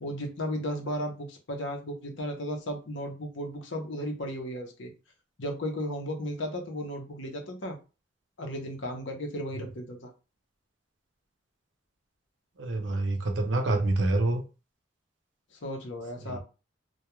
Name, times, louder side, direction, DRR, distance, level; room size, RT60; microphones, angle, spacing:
voice 1, 0.0-4.9 5.4-7.8 8.4-10.1 15.5-16.4, equal, 75° left, 0.7 m, -35 dB
voice 2, 12.6-14.4 16.2-16.4, right 2 dB, 70° right, 0.6 m, -27 dB
2.3 x 2.2 x 3.0 m
head